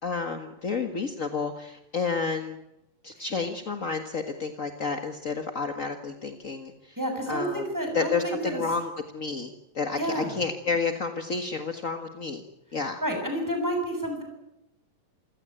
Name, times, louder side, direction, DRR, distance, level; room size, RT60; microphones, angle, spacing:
voice 1, 0.0-2.6 3.0-6.7 7.3-7.6 7.9-12.4 12.7-13.0, left 4 dB, 40° left, 7 dB, 1.1 m, -30 dB
voice 2, 7.0-8.6 10.0-10.4 12.7-14.2, equal, 5° right, 3 dB, 7.3 m, -30 dB
28.0 x 16.5 x 8.9 m, 0.86 s
omnidirectional pair, 3.9 m